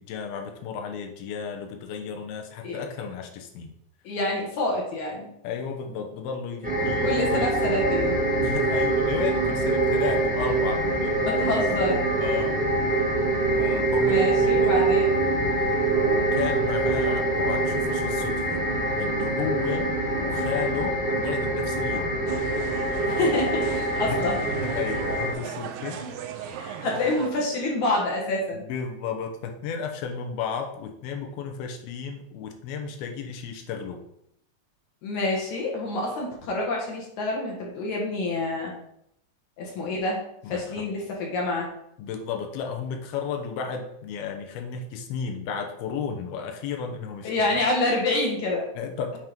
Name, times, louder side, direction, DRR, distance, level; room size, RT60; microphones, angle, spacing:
voice 1, 0.0-3.7 5.4-7.5 8.4-11.1 12.2-12.6 12.9-13.1 13.6-14.9 15.9-18.6 19.0-19.9 20.2-22.2 24.1-24.2 24.6-26.0 26.5-26.6 28.5-34.0 40.4-40.9 42.0-47.5 48.8-49.2, left 6 dB, 85° left, 3 dB, 2.8 m, -33 dB
voice 2, 4.0-5.3 7.0-8.2 11.3-12.1 14.0-15.2 23.1-23.7 24.0-24.4 25.9-26.1 26.4-28.6 35.0-38.7 39.6-40.2 40.5-41.7 47.2-48.7, left 2 dB, 60° left, -2 dB, 2.5 m, -27 dB
sound 1, 6.6-25.3, right 2 dB, 15° right, 0.3 m, -24 dB
sound 2, 22.3-27.3, right 8 dB, 80° right, 2.4 m, -37 dB
8.6 x 3.7 x 5.2 m, 0.74 s
omnidirectional pair, 4.3 m